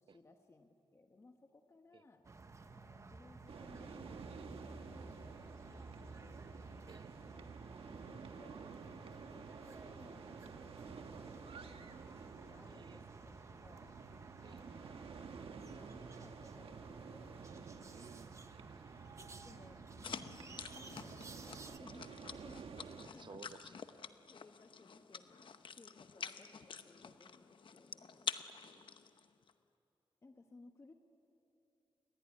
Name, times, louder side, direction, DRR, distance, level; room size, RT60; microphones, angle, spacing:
voice 1, 0.0-2.3 2.7-6.4 7.2-7.5 8.0-12.1 12.4-14.0 14.4-15.1 15.5-17.4 19.2-23.4 24.3-28.3 30.2-30.9, left 3 dB, 30° left, 5 dB, 1.1 m, -62 dB
sound 1, 2.2-21.8, right 3 dB, 35° right, 1.0 m, -55 dB
sound 2, 3.5-23.1, right 5 dB, 90° right, 1.4 m, -52 dB
voice 2, 6.9-7.6 12.7-13.0 14.4-14.6 17.9-18.4 23.2-23.8 28.7-28.8, right 6 dB, 55° right, 11 dB, 0.9 m, -57 dB
sound 3, 20.0-29.5, left 6 dB, 60° left, 0.9 m, -48 dB
28.5 x 20.5 x 10.0 m, 3.0 s
wide cardioid pair, 180°, 9 cm